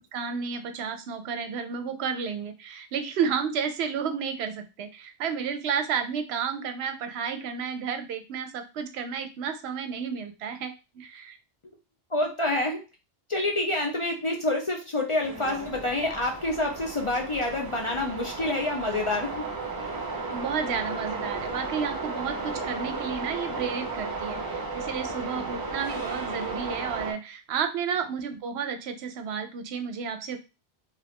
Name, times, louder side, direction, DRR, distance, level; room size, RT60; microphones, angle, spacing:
voice 1, 0.1-11.4 20.3-30.4, right 6 dB, 75° right, 8 dB, 0.8 m, -32 dB
voice 2, 12.1-12.8 13.3-19.5 19.8-19.9 25.3-25.5, left 2 dB, 40° left, 0 dB, 0.5 m, -27 dB
sound 1, 15.2-27.1, right 3 dB, 25° right, 0.5 m, -34 dB
2.8 x 2.4 x 3.4 m, 0.29 s
omnidirectional pair, 1.1 m